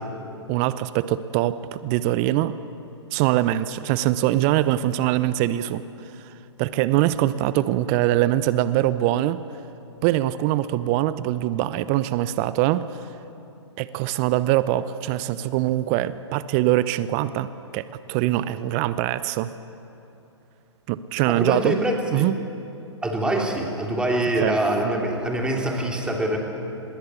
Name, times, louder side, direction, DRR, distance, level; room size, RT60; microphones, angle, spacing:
voice 1, 0.5-2.6 3.1-5.8 6.2-6.3 6.6-9.4 10.0-12.9 13.8-17.5 17.7-19.5 20.9-21.8 22.1-22.3 24.4-24.6, right 14 dB, 30° right, 15 dB, 0.7 m, -23 dB
voice 2, 21.3-22.3 23.0-26.4, right 1 dB, 5° right, 0 dB, 3.5 m, -24 dB
24.5 x 21.5 x 8.4 m, 2.8 s
figure-of-eight pair, 115°, 15 cm